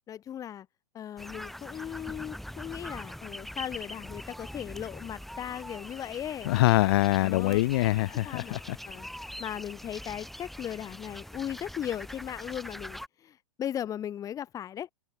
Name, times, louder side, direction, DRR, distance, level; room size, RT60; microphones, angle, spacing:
voice 1, 0.1-0.7 0.9-6.5 7.2-7.6 8.2-9.1 9.4-14.9, left 10 dB, 15° left, 1.4 m, -37 dB
sound 1, 1.2-13.1, equal, ahead, 1.9 m, -43 dB
voice 2, 6.4-8.8, left 18 dB, 40° left, 1.0 m, -24 dB
figure-of-eight pair, 110°, 19 cm